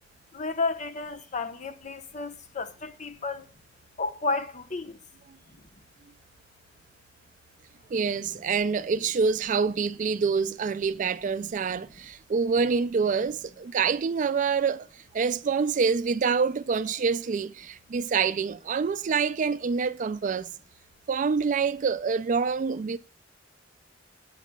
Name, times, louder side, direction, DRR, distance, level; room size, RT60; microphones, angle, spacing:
voice 1, 0.3-3.5 4.0-5.0, left 3 dB, 40° left, 0.9 m, -32 dB
voice 2, 7.9-20.5 21.1-23.0, right 5 dB, 45° right, 0.4 m, -26 dB
18.5 x 8.3 x 2.3 m
head